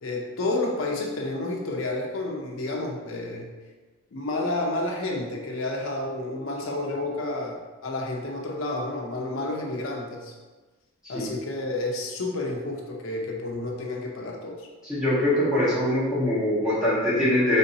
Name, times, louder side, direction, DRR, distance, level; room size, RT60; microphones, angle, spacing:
voice 1, 0.0-3.5 4.1-10.3 11.1-14.7, left 2 dB, 85° left, 0 dB, 0.7 m, -30 dB
voice 2, 14.9-17.6, left 1 dB, 5° right, -10 dB, 1.3 m, -23 dB
4.2 x 3.8 x 2.7 m, 1.3 s
head